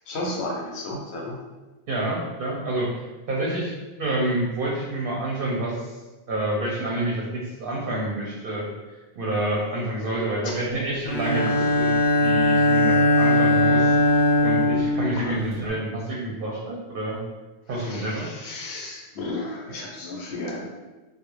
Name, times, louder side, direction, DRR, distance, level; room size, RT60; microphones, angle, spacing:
voice 1, 0.1-1.4 10.4-10.5 11.5-11.6 15.2-15.6 17.7-20.7, left 2 dB, 75° left, -2 dB, 0.9 m, -33 dB
voice 2, 1.9-3.7 4.0-6.0 6.3-11.9 12.2-17.2 17.7-18.3, right 1 dB, 60° right, -5 dB, 0.7 m, -28 dB
Bowed string instrument, 11.0-15.7, left 1 dB, 10° left, 0.5 m, -20 dB
2.3 x 2.0 x 3.0 m, 1.2 s
omnidirectional pair, 1.1 m